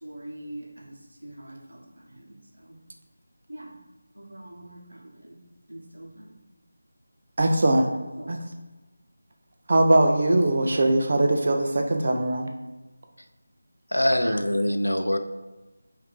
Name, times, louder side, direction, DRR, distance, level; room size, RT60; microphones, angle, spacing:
voice 1, 0.0-0.9 1.2-2.8 3.5-3.7 4.1-5.4 5.7-6.3 7.9-8.5, right 1 dB, 80° right, -1 dB, 0.9 m, -43 dB
voice 2, 7.4-7.9 8.3-8.4 9.7-12.5, right 1 dB, 45° right, 4 dB, 0.5 m, -21 dB
voice 3, 13.9-15.2, left 1 dB, 85° left, 8 dB, 0.4 m, -23 dB
3.2 x 2.7 x 3.6 m, 1.1 s
figure-of-eight pair, 165°, 0 cm